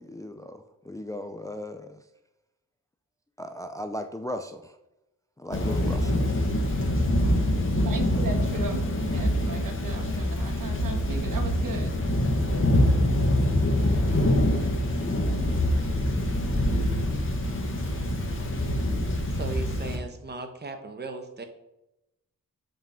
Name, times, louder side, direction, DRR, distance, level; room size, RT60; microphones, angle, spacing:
voice 1, 0.0-2.0 3.4-4.7 5.4-6.1, left 1 dB, 10° left, 8 dB, 0.4 m, -37 dB
Thunder / Rain, 5.5-20.0, left 1 dB, 35° left, 1.6 m, -25 dB
voice 2, 7.8-13.2, right 2 dB, 70° right, 5 dB, 1.4 m, -38 dB
voice 3, 19.4-21.4, right 3 dB, 30° right, 6 dB, 1.0 m, -37 dB
7.5 x 5.4 x 5.7 m, 0.91 s
wide cardioid pair, 165°, 34 cm